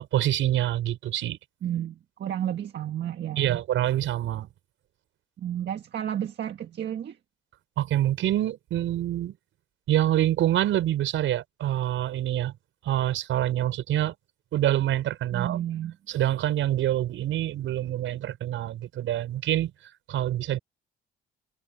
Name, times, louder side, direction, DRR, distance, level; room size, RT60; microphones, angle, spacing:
voice 1, 0.0-1.4 3.4-4.5 7.8-9.4 9.9-12.5 12.8-14.1 14.5-15.6 16.1-19.7 20.1-20.6, right 12 dB, 80° right, 5.9 m, -26 dB
voice 2, 1.6-3.6 5.4-7.2 15.3-16.0, right 10 dB, 60° right, 1.6 m, -32 dB
cardioid pair, 90°, 20 cm